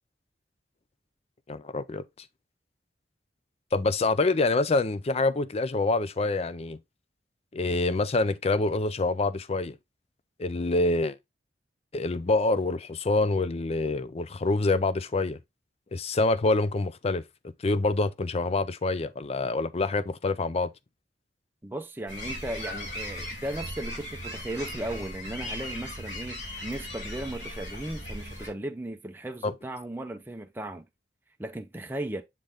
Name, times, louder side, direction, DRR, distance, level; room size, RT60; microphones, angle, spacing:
voice 1, 1.5-2.0 3.7-6.8 7.5-9.8 10.4-11.2 11.9-15.4 15.9-20.7 29.4-29.5, left 3 dB, 35° left, 0.5 m, -26 dB
voice 2, 21.6-30.8 31.4-32.2, right 1 dB, 10° right, 0.5 m, -36 dB
sound 1, 22.1-28.5, left 1 dB, 85° left, 3.6 m, -38 dB
7.4 x 4.0 x 3.4 m
head